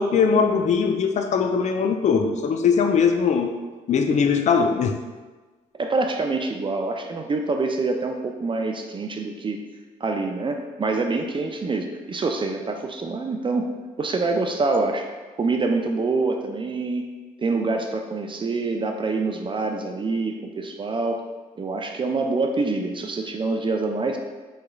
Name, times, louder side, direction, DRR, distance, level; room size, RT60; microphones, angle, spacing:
voice 1, 0.0-3.5 3.9-5.0, left 6 dB, 45° left, 5 dB, 0.4 m, -20 dB
voice 2, 5.8-9.6 10.0-13.7 14.0-15.1 15.4-17.1 17.4-21.2 21.6-24.2, right 3 dB, 30° right, 4 dB, 0.4 m, -26 dB
3.5 x 3.2 x 2.2 m, 1.3 s
supercardioid pair, 60°, 17 cm